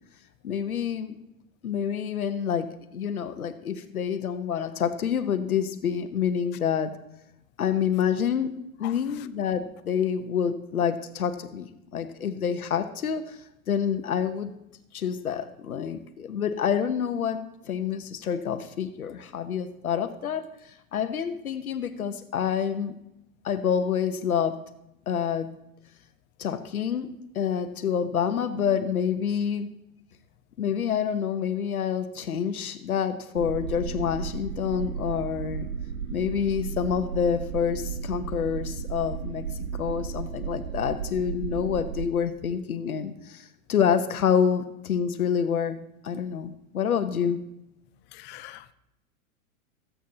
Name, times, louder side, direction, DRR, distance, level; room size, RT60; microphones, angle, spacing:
voice 1, 0.4-1.2 1.6-6.9 7.6-8.5 8.8-13.4 13.7-14.5 14.9-17.4 17.6-22.9 23.4-24.6 25.1-25.5 26.4-27.1 27.3-29.7 30.6-35.7 36.1-39.4 39.7-45.8 46.0-47.4, left 8 dB, 80° left, 1.0 m, -27 dB
sound 1, 33.3-42.1, right 7 dB, 65° right, 1.0 m, -34 dB
voice 2, 48.1-48.7, left 16 dB, 25° left, 0.5 m, -42 dB
19.5 x 8.4 x 2.8 m
hypercardioid pair, 105°, 42 cm